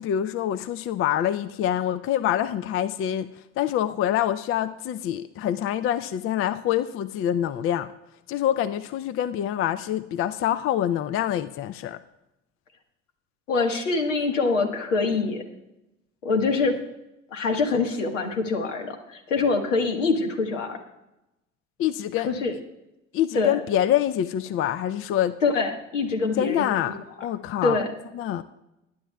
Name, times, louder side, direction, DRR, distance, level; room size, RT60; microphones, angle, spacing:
voice 1, 0.0-3.3 3.6-7.9 8.3-12.0 21.8-22.3 23.1-25.3 26.4-26.9 27.2-27.8 28.2-28.4, left 11 dB, 35° left, 14 dB, 0.5 m, -25 dB
voice 2, 13.5-15.4 16.2-16.8 17.3-20.8 22.2-22.5 23.3-23.6 25.4-26.6 27.6-28.0, left 4 dB, 80° left, 4 dB, 1.5 m, -24 dB
20.0 x 10.0 x 2.3 m, 0.92 s
figure-of-eight pair, 60°, 37 cm